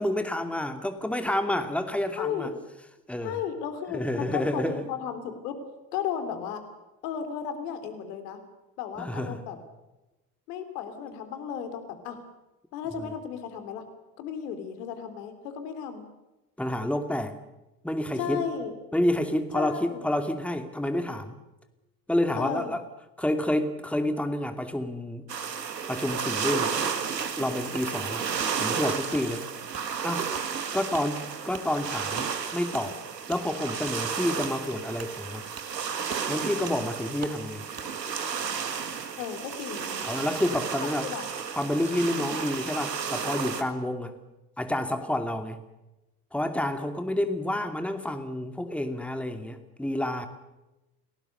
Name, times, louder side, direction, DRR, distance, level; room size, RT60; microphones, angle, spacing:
voice 1, 0.0-2.5 3.1-3.4 3.9-4.8 9.0-9.4 16.6-17.4 17.8-18.4 18.9-21.3 22.1-22.8 23.2-25.2 25.9-26.7 27.4-28.2 28.6-29.4 30.0-30.3 30.7-33.0 33.3-35.4 36.3-37.6 40.0-41.1 41.5-44.2 44.6-45.6 46.3-50.3, left 1 dB, 5° left, 7 dB, 2.5 m, -29 dB
voice 2, 2.2-2.5 3.2-5.6 5.9-6.6 7.0-8.4 8.8-9.6 10.5-12.2 12.7-13.8 14.2-16.1 18.1-18.8 19.5-20.0 22.4-22.7 39.2-40.0 41.0-41.3 42.2-42.4, left 8 dB, 70° left, 8 dB, 3.3 m, -34 dB
sound 1, 25.3-43.6, right 6 dB, 85° right, 1.7 m, -33 dB
Wood, 27.7-27.9 28.4-28.5 29.1-29.3 29.7-29.9 30.3-30.5 30.9-31.1 31.5-31.7 32.1-32.3 32.7-32.9 33.3-33.4 33.8-34.0 34.4-34.5 35.0-35.1 35.6-35.7 36.1-36.3 36.7-36.8 37.2-37.4 37.7-37.9, right 6 dB, 30° right, 2.5 m, -42 dB
29.5 x 18.5 x 6.7 m, 1.0 s
figure-of-eight pair, 60°, 48 cm